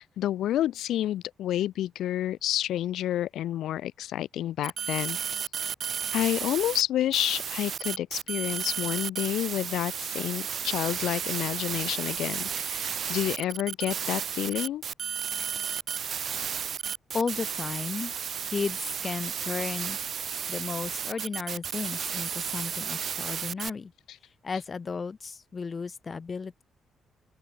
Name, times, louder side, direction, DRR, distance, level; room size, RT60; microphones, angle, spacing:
voice 1, 0.0-5.2 6.1-14.8, left 12 dB, 75° left, 1.3 m, -29 dB
sound 1, 4.6-6.8 7.1-23.7, right 7 dB, 40° right, 1.9 m, -33 dB
voice 2, 17.1-18.1 18.5-20.0 20.5-23.9 24.4-26.6, left 5 dB, 25° left, 1.4 m, -34 dB
open air
cardioid pair, 170°, 0 cm